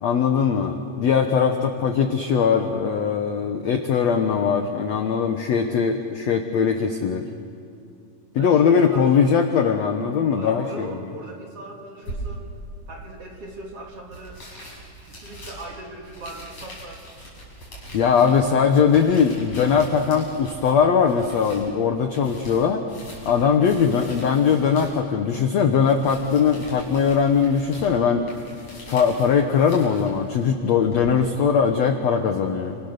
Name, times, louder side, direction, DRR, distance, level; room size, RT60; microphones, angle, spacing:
voice 1, 0.0-7.3 8.3-10.9 17.9-22.8 23.2-28.2 28.9-32.8, left 6 dB, 70° left, 5 dB, 1.6 m, -20 dB
voice 2, 8.4-9.5 10.3-12.5 12.9-14.4 15.0-17.1 18.1-18.7, right 2 dB, 40° right, 0 dB, 2.9 m, -39 dB
sound 1, 12.0-31.1, right 1 dB, 35° left, 7.9 m, -42 dB
29.5 x 26.0 x 6.7 m, 2.4 s
omnidirectional pair, 4.6 m